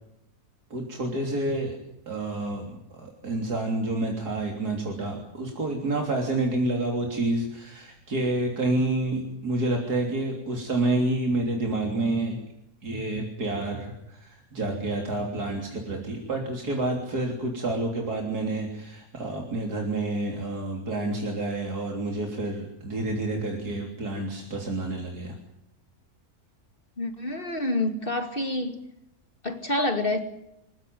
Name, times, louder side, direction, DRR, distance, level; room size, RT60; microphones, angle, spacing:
voice 1, 0.7-1.8 2.1-12.4 12.8-25.4, right 2 dB, 90° right, 1 dB, 3.9 m, -29 dB
voice 2, 27.0-28.8 29.4-30.2, left 2 dB, 35° left, 6 dB, 2.6 m, -27 dB
26.5 x 16.0 x 9.5 m, 0.82 s
omnidirectional pair, 1.6 m